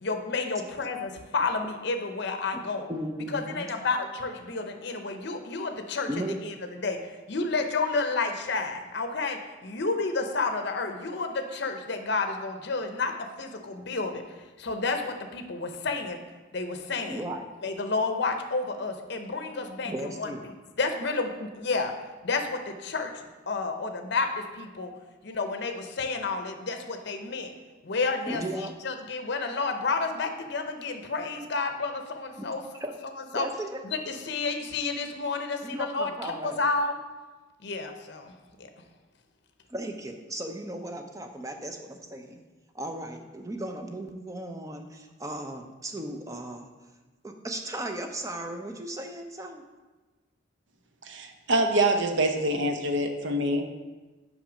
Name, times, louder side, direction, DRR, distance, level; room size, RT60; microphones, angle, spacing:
voice 1, 0.0-2.9 3.3-6.1 6.4-16.2 16.5-17.2 17.6-20.3 20.8-21.9 22.2-24.9 25.2-27.5 27.8-32.6 33.3-33.5 33.8-37.0 37.6-38.3 38.6-38.7, left 3 dB, 55° left, 6 dB, 0.6 m, -30 dB
voice 2, 2.9-3.7 6.1-6.4 17.0-17.5 19.8-20.4 28.3-28.7 32.4-32.5 32.8-32.9 33.3-33.8 35.6-36.6 39.7-42.4 42.7-46.7 47.2-49.6, right 1 dB, 15° right, 5 dB, 0.5 m, -36 dB
voice 3, 51.0-53.6, right 1 dB, 65° right, 5 dB, 0.7 m, -25 dB
6.0 x 5.4 x 5.0 m, 1.2 s
head